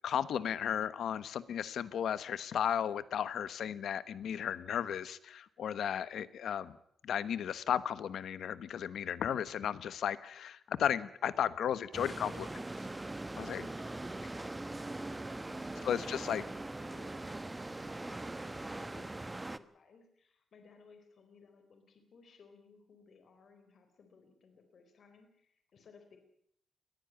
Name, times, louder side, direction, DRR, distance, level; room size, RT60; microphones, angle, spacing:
voice 1, 0.0-6.8 7.0-12.6 13.4-13.7 15.8-16.4, left 9 dB, 80° left, 16 dB, 1.2 m, -34 dB
voice 2, 10.9-11.9 14.8-26.2, left 5 dB, 60° left, 7 dB, 4.1 m, -61 dB
sound 1, 11.9-19.6, right 2 dB, 15° right, 1.1 m, -41 dB
21.0 x 15.0 x 8.8 m, 0.71 s
cardioid pair, 105°, 0 cm